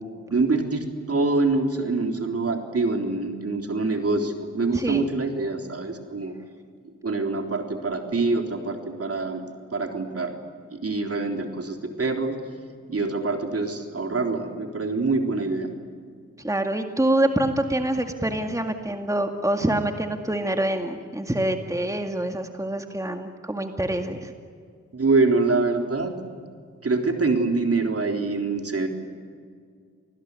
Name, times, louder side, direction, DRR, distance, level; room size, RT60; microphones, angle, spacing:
voice 1, 0.3-6.4 7.0-9.4 9.7-10.3 10.7-12.4 12.9-15.7 24.9-26.2 26.8-28.9, right 3 dB, 55° right, 4 dB, 3.7 m, -25 dB
voice 2, 4.7-5.0 16.4-24.3, right 1 dB, 10° right, 5 dB, 2.1 m, -26 dB
28.0 x 20.0 x 9.7 m, 2.1 s
cardioid pair, 70°, 29 cm